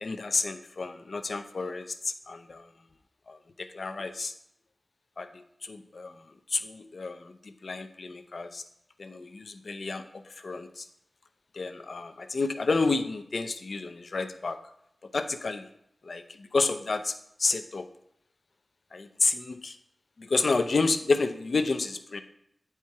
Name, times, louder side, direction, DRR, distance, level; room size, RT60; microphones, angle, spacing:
voice 1, 0.0-2.7 3.3-4.3 5.2-8.6 9.0-10.9 11.5-14.6 15.1-15.7 16.0-17.9 18.9-19.8 20.2-22.2, left 3 dB, 75° left, 9 dB, 0.6 m, -30 dB
9.1 x 4.4 x 4.7 m, 0.76 s
wide cardioid pair, 70°, 0 cm